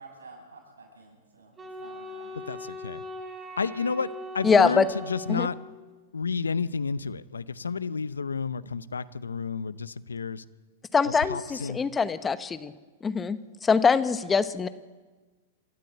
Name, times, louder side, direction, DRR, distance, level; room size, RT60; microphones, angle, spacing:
voice 1, 0.0-2.4, right 3 dB, 85° right, 1 dB, 7.8 m, -50 dB
Wind instrument woodwind instrument, 1.6-6.0, left 1 dB, 15° right, 3.2 m, -40 dB
voice 2, 2.5-3.0 3.6-4.1 4.3-5.6 6.1-10.4 11.3-11.8, left 5 dB, 90° left, 17 dB, 0.7 m, -31 dB
voice 3, 4.4-4.9 5.3-5.5 10.9-12.7 13.0-14.7, left 5 dB, 15° left, 13 dB, 1.1 m, -23 dB
28.0 x 13.0 x 8.0 m, 1.3 s
hypercardioid pair, 105°, 0 cm